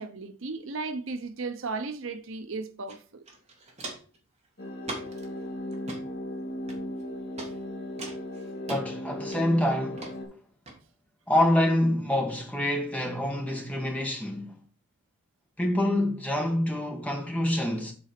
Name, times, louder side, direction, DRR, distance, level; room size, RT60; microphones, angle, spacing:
voice 1, 0.0-3.2 7.4-7.5, right 3 dB, 65° right, 0.7 m, -35 dB
Walk footsteps, 2.9-3.0 3.2-4.2 4.8-5.2 5.7-6.0 6.7-7.0 7.4-7.5 8.0-8.8 9.3-9.6 10.0-10.1 10.7-10.8, right 2 dB, 30° right, 1.9 m, -39 dB
sound 1, 4.6-10.2, left 1 dB, 50° left, 3.3 m, -37 dB
voice 2, 8.7-10.1 11.3-14.6 15.6-17.9, left 1 dB, 5° left, 1.5 m, -26 dB
7.9 x 4.1 x 5.8 m
head